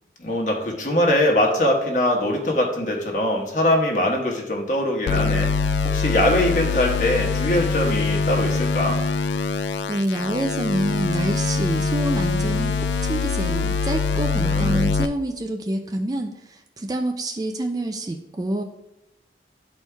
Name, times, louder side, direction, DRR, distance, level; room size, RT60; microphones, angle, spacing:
voice 1, 0.2-5.5 5.8-9.0 14.4-14.9, left 1 dB, 45° left, 0 dB, 1.2 m, -22 dB
sound 1, 5.1-15.1, left 4 dB, 75° left, 0.4 m, -23 dB
voice 2, 9.6-18.6, right 1 dB, 20° right, 4 dB, 0.3 m, -27 dB
12.5 x 4.4 x 2.3 m, 0.92 s
head